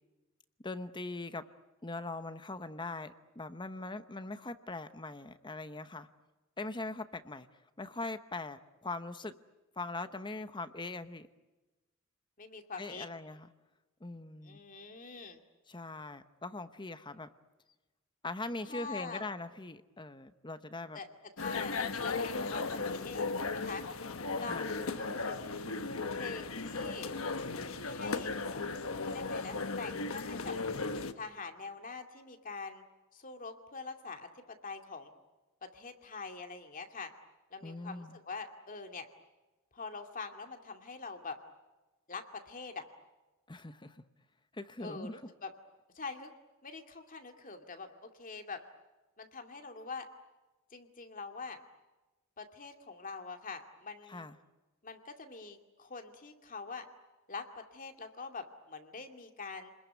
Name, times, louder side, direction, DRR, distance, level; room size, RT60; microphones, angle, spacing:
voice 1, 0.6-1.4 1.8-6.1 6.6-7.5 7.8-9.4 9.8-11.3 12.8-13.5 14.0-14.6 15.7-17.3 18.2-21.0 24.3-24.7 37.6-38.2 43.5-44.0 44.5-45.2 54.1-54.4, left 2 dB, 20° left, 11 dB, 1.0 m, -41 dB
voice 2, 12.4-13.1 14.4-15.4 18.7-19.2 20.9-21.1 21.4-21.7 22.0-23.8 24.4-25.6 26.1-27.1 27.8-28.6 29.0-30.6 31.1-32.8 33.1-35.1 35.7-37.1 37.5-39.1 39.7-41.4 42.1-42.8 44.8-45.5 45.9-46.3 46.6-48.6 49.2-50.1 50.7-51.6 52.4-54.3 54.8-56.8 57.3-59.7, left 4 dB, 40° left, 5 dB, 2.4 m, -44 dB
sound 1, 21.4-31.1, left 3 dB, 75° left, 1.3 m, -36 dB
29.5 x 21.0 x 9.5 m, 1.1 s
head